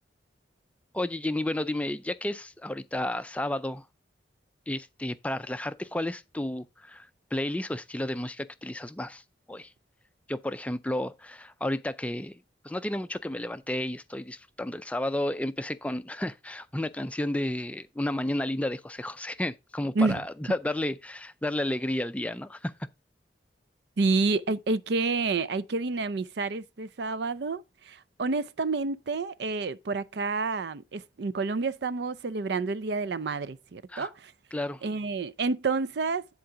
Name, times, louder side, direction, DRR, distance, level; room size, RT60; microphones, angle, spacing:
voice 1, 0.9-3.9 4.7-9.7 10.3-22.7 33.9-34.1 34.5-34.8, left 1 dB, 5° left, 0.3 m, -32 dB
voice 2, 24.0-34.3 34.8-36.3, right 3 dB, 65° right, 0.5 m, -29 dB
10.5 x 3.9 x 4.7 m
head